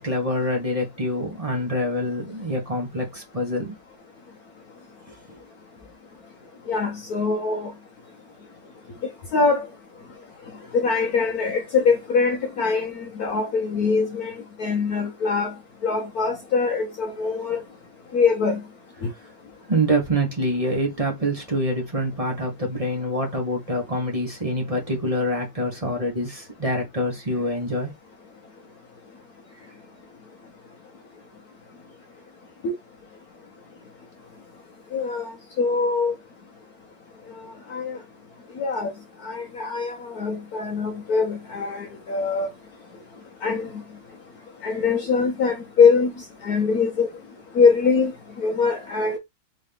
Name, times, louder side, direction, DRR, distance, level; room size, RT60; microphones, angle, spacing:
voice 1, 0.0-3.8 5.1-5.4 19.7-27.9, equal, 20° right, 1.1 m, -26 dB
voice 2, 6.7-7.7 9.3-9.7 10.7-14.3 14.6-15.5 15.8-17.6 18.1-18.6 32.6-32.7 34.9-35.3 35.6-36.1 37.4-38.0 38.6-38.9 39.2-42.5 43.4-43.7 44.6-46.1 46.4-47.1 47.5-48.1 48.4-49.2, left 5 dB, 55° left, 1.1 m, -22 dB
3.8 x 3.6 x 3.4 m
omnidirectional pair, 2.2 m